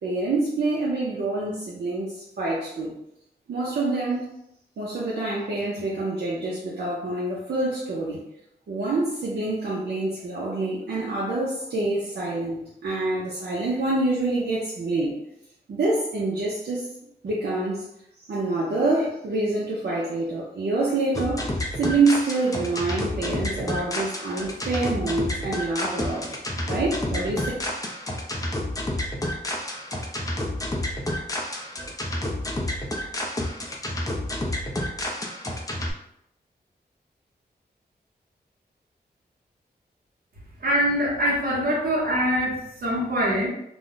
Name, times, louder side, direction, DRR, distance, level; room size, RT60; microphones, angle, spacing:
voice 1, 0.0-2.9 3.5-4.3 4.8-8.2 8.7-15.2 15.7-16.9 17.2-17.9 18.3-26.4 26.7-27.5, right 2 dB, 75° right, -6 dB, 0.6 m, -26 dB
sound 1, 21.1-35.9, left 1 dB, 20° left, 0.4 m, -30 dB
voice 2, 40.6-43.5, equal, 60° right, -4 dB, 1.0 m, -23 dB
2.4 x 2.1 x 3.8 m, 0.78 s
wide cardioid pair, 135°, 17 cm